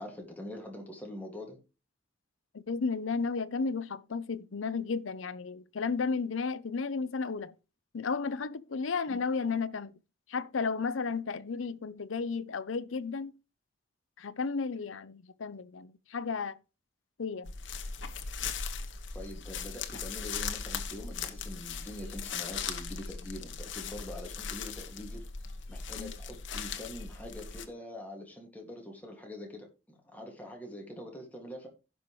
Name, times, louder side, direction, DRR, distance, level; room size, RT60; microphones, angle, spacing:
voice 1, 0.0-1.6 9.1-9.2 19.1-25.2 25.7-31.7, left 1 dB, 10° left, 2.2 m, -44 dB
voice 2, 2.5-7.5 7.9-9.9 10.3-13.3 14.2-16.6 17.2-17.5 26.0-26.1, left 4 dB, 90° left, 0.6 m, -33 dB
sound 1, 17.4-27.6, left 6 dB, 70° left, 1.1 m, -38 dB
16.5 x 5.5 x 3.2 m
head